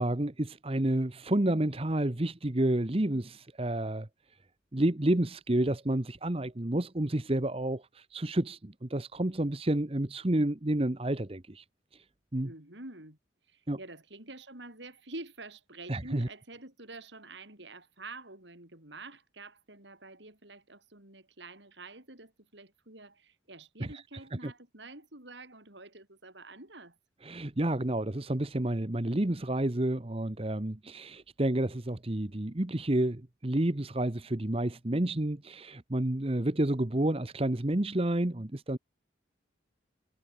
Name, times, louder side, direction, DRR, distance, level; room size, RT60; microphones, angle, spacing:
voice 1, 0.0-4.1 4.7-11.6 12.3-12.5 13.7-13.8 15.9-16.3 23.8-23.9 24.4-24.5 27.2-38.8, right 1 dB, 30° right, 1.1 m, -30 dB
voice 2, 12.4-13.2 13.5-27.0, right 2 dB, 70° right, 5.4 m, -48 dB
head